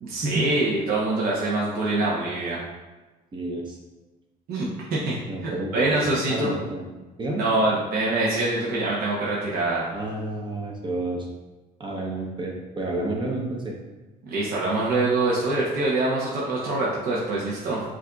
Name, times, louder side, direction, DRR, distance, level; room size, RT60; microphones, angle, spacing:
voice 1, 0.0-2.6 4.5-5.2 5.4-6.5 7.4-9.9 14.3-17.8, right 2 dB, 60° right, -5 dB, 0.8 m, -25 dB
voice 2, 3.3-3.8 5.3-6.9 7.2-7.4 9.9-11.3 11.8-13.8, right 2 dB, 30° right, -1 dB, 0.7 m, -30 dB
7.3 x 2.6 x 2.3 m, 1.2 s
cardioid pair, 110°, 17 cm